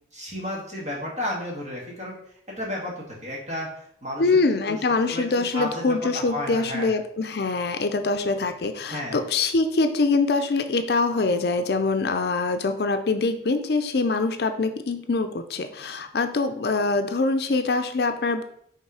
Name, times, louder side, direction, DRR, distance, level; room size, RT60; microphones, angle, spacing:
voice 1, 0.1-2.2 2.5-4.2 4.6-4.8 5.1-6.9 8.9-9.2, left 1 dB, 40° right, -4 dB, 1.9 m, -32 dB
voice 2, 4.2-18.4, left 3 dB, 60° left, 8 dB, 0.5 m, -24 dB
5.6 x 3.5 x 4.8 m, 0.68 s
head